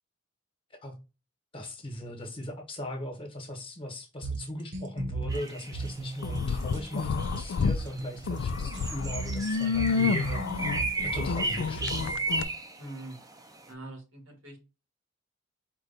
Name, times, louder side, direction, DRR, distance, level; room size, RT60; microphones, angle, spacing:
voice 1, 1.5-10.8 11.0-12.0, left 1 dB, 25° left, 1.3 m, -39 dB
sound 1, 4.2-12.2, right 2 dB, 60° right, 0.8 m, -37 dB
sound 2, 5.3-13.7, right 2 dB, 20° right, 0.7 m, -35 dB
sound 3, 6.2-7.8 8.2-12.4, left 5 dB, 65° left, 0.3 m, -29 dB
voice 2, 8.6-8.9 12.8-13.2 13.7-14.6, right 2 dB, 90° right, 2.0 m, -44 dB
4.6 x 2.6 x 4.0 m
head